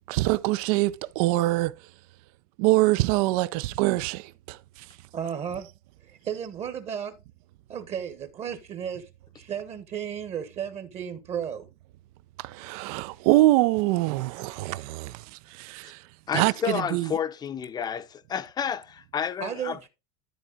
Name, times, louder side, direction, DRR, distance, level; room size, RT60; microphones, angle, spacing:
voice 1, 0.1-1.8 2.6-4.6 12.4-16.0 16.3-17.1, right 18 dB, 70° right, 0.6 m, -24 dB
voice 2, 5.1-5.7 6.0-7.1 7.7-9.1 9.3-11.7 19.4-19.9, right 8 dB, 35° right, 1.2 m, -34 dB
voice 3, 16.3-19.9, left 8 dB, 20° left, 0.6 m, -31 dB
13.0 x 4.5 x 3.8 m
cardioid pair, 150°, 19 cm